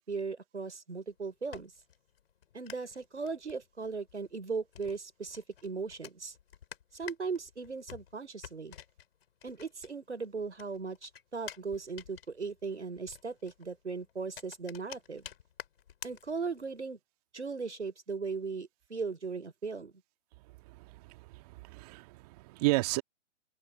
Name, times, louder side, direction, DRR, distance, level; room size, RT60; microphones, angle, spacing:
voice 1, 0.1-1.7 2.5-6.3 6.9-8.8 9.4-15.2 16.0-17.0 17.3-19.9, right 4 dB, 85° right, 4.8 m, -38 dB
sound 1, 1.1-10.3 10.5-16.8, left 9 dB, 60° left, 5.2 m, -51 dB
voice 2, 20.7-23.0, right 22 dB, 35° right, 1.9 m, -33 dB
open air
figure-of-eight pair, 125°, 34 cm